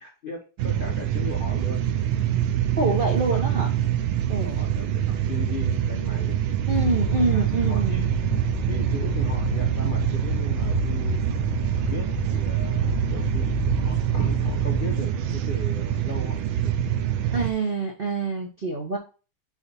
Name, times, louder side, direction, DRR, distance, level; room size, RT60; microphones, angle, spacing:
voice 1, 0.0-1.9 2.8-3.4 4.6-6.4 7.1-8.2 8.6-11.3 11.9-13.5 13.8-16.8, left 3 dB, 85° left, 1 dB, 0.4 m, -38 dB
sound 1, 0.6-17.5, right 10 dB, 75° right, 1.4 m, -25 dB
voice 2, 2.8-3.7 4.3-4.6 6.7-8.1 17.3-19.0, right 3 dB, 50° right, 0 dB, 0.6 m, -26 dB
sound 2, 6.7-15.0, left 2 dB, 25° right, 0.9 m, -30 dB
4.9 x 4.0 x 5.4 m, 0.34 s
omnidirectional pair, 2.3 m